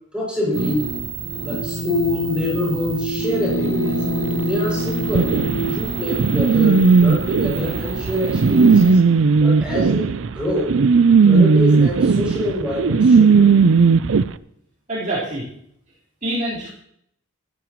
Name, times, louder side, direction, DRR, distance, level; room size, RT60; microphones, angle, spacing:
voice 1, 0.1-0.9 1.4-4.0 4.5-5.3 5.6-9.0 9.4-10.8 11.2-13.6, left 1 dB, 5° right, -4 dB, 6.6 m, -25 dB
sound 1, 0.5-8.9, right 2 dB, 80° right, 1.9 m, -28 dB
sound 2, 1.2-5.8, equal, 70° left, 0.9 m, -27 dB
sound 3, 5.1-14.2, right 5 dB, 60° right, 0.4 m, -15 dB
voice 2, 14.9-15.4 16.2-16.8, right 1 dB, 40° right, -9 dB, 4.3 m, -26 dB
15.0 x 14.5 x 3.1 m, 0.71 s
head